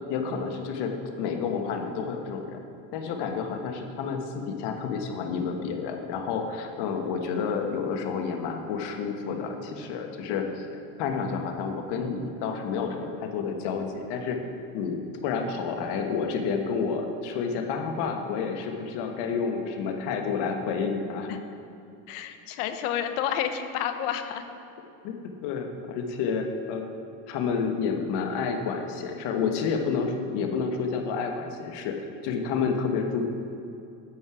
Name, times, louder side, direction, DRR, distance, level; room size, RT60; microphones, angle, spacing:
voice 1, 0.1-2.6 2.9-10.6 11.0-14.4 14.7-21.3 25.0-26.8 27.3-31.9 32.2-33.3, left 5 dB, 65° left, 4 dB, 1.3 m, -30 dB
sound 1, 9.6-15.7, right 5 dB, 75° right, 1.9 m, -49 dB
voice 2, 22.1-24.4, left 9 dB, 85° left, 8 dB, 0.9 m, -30 dB
11.5 x 7.4 x 4.8 m, 2.7 s
cardioid pair, 130°, 44 cm